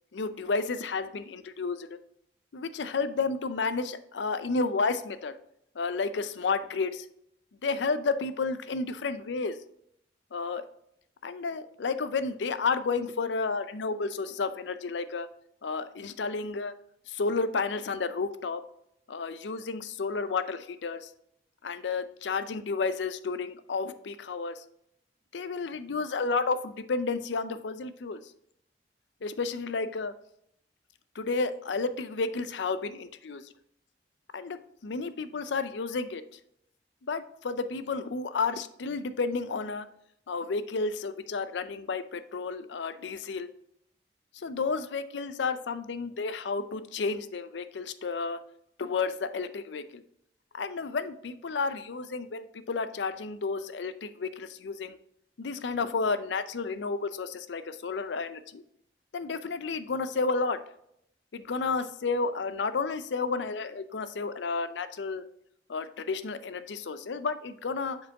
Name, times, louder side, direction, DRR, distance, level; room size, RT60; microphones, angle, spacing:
voice 1, 0.1-1.9 2.5-5.3 5.8-7.1 7.6-9.6 10.3-10.6 11.2-15.3 15.6-16.7 17.1-18.6 19.1-21.1 21.6-24.6 25.3-28.2 29.2-30.1 31.2-33.4 34.3-36.2 37.1-39.9 40.3-43.5 44.3-48.4 48.8-50.0 50.5-55.0 55.4-58.6 59.1-60.6 61.3-65.2 65.7-68.0, left 4 dB, 90° left, 12 dB, 0.5 m, -31 dB
7.5 x 4.7 x 3.5 m, 0.74 s
head